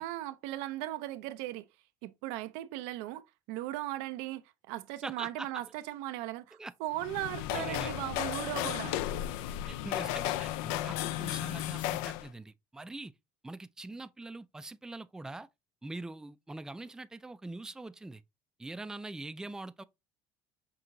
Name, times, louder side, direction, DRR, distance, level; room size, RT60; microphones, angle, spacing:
voice 1, 0.0-1.7 2.0-9.0, right 15 dB, 85° right, 0.4 m, -38 dB
voice 2, 5.0-5.6 6.6-6.7 7.5-7.9 9.7-13.1 13.4-15.5 15.8-18.2 18.6-19.8, right 2 dB, 5° right, 0.3 m, -43 dB
sound 1, 6.9-12.3, left 13 dB, 85° left, 0.4 m, -34 dB
5.9 x 2.8 x 2.6 m
cardioid pair, 115°, 10 cm